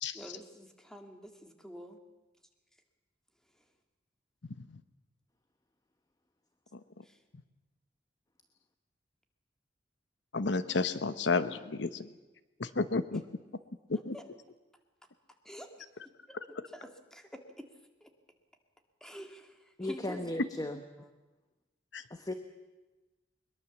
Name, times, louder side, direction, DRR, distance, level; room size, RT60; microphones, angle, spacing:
voice 1, 0.1-2.0 7.0-7.2 13.1-13.2 13.9-14.3 15.4-15.7 16.0-17.7 18.0-18.1 19.0-20.4 21.0-21.1, equal, 5° left, 5 dB, 2.1 m, -48 dB
voice 2, 10.3-12.1 12.6-13.2 13.9-14.1 21.9-22.0, left 3 dB, 70° left, 13 dB, 0.9 m, -31 dB
voice 3, 19.8-20.8 22.1-22.3, left 1 dB, 20° left, 7 dB, 1.1 m, -36 dB
22.0 x 21.5 x 7.2 m, 1.1 s
head